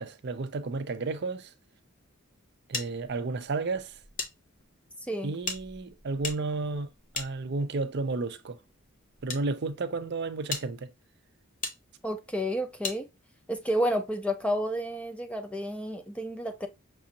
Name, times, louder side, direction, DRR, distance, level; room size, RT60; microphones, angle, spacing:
voice 1, 0.0-1.5 2.7-3.9 5.2-6.9 7.1-8.6 9.2-10.9, right 3 dB, 50° right, 0.5 m, -32 dB
sound 1, 2.7-4.3 4.6-4.7 5.4-7.9 8.7-9.4 10.0-10.1 10.5-10.7 11.6-11.8 12.8-13.0, left 4 dB, 40° left, 0.9 m, -37 dB
voice 2, 12.0-13.1 13.5-16.7, equal, 5° left, 0.5 m, -30 dB
6.1 x 2.5 x 2.8 m
head